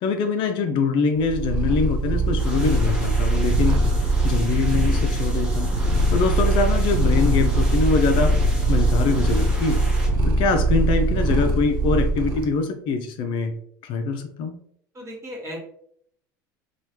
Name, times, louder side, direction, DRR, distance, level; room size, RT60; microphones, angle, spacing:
voice 1, 0.0-3.8 4.2-5.7 6.1-8.3 8.7-9.9 10.2-14.6, left 4 dB, 50° left, 7 dB, 0.4 m, -24 dB
Purr, 1.2-12.5, right 2 dB, 55° right, 0.7 m, -21 dB
sound 1, 2.4-10.1, left 2 dB, 10° right, 1.0 m, -33 dB
voice 2, 14.9-15.6, equal, 30° right, -2 dB, 1.4 m, -35 dB
3.0 x 2.3 x 2.8 m, 0.68 s
hypercardioid pair, 85°, 10 cm